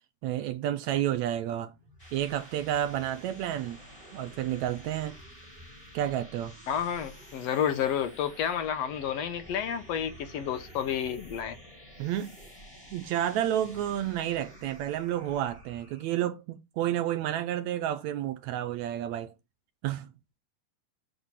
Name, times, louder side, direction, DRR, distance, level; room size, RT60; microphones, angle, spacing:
voice 1, 0.2-1.7 2.1-3.8 4.1-5.2 5.9-6.5 12.0-12.3 12.9-19.3 19.8-20.1, right 11 dB, 80° right, 1.7 m, -30 dB
sound 1, 1.7-16.3, equal, 15° left, 4.3 m, -50 dB
voice 2, 6.7-11.6, left 9 dB, 70° left, 1.7 m, -30 dB
6.6 x 5.9 x 7.2 m
omnidirectional pair, 3.8 m